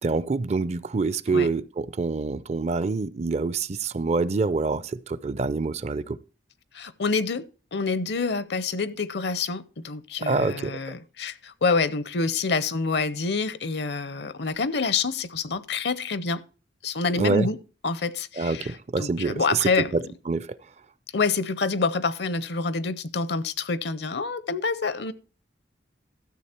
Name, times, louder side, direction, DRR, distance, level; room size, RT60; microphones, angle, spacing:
voice 1, 0.0-6.2 10.2-10.8 17.2-17.5 18.4-20.5, right 4 dB, 35° right, 0.4 m, -26 dB
voice 2, 6.7-7.4 7.7-16.4 16.8-17.6 17.8-18.7 19.0-20.0 21.1-25.1, left 4 dB, 60° left, 0.7 m, -27 dB
13.0 x 7.1 x 4.3 m
head